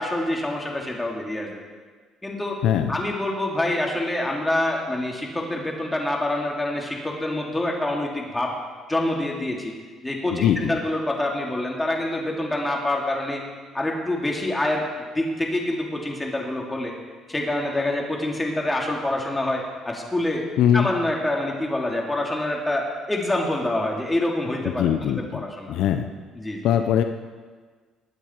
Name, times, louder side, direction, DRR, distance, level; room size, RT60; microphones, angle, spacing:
voice 1, 0.0-1.6 2.2-2.6 2.9-8.5 8.9-9.7 10.0-13.4 13.7-14.8 15.1-16.9 17.3-20.4 20.7-25.7 26.4-26.6, left 1 dB, 15° left, -1 dB, 3.0 m, -26 dB
voice 2, 10.3-10.7 20.6-20.9 24.8-25.4 25.7-26.1 26.6-27.0, left 10 dB, 75° left, 7 dB, 0.8 m, -21 dB
21.5 x 9.0 x 4.7 m, 1.5 s
cardioid pair, 95°, 0 cm